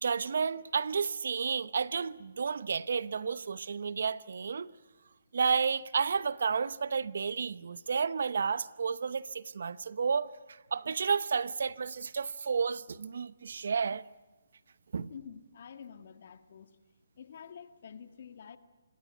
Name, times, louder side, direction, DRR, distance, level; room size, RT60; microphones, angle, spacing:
voice 1, 0.0-4.7 5.3-14.0 14.9-15.1, right 5 dB, 70° right, 0.9 m, -31 dB
voice 2, 15.1-16.7 17.2-18.6, left 7 dB, 55° left, 1.9 m, -48 dB
25.5 x 21.0 x 9.3 m
hypercardioid pair, 150°, 0 cm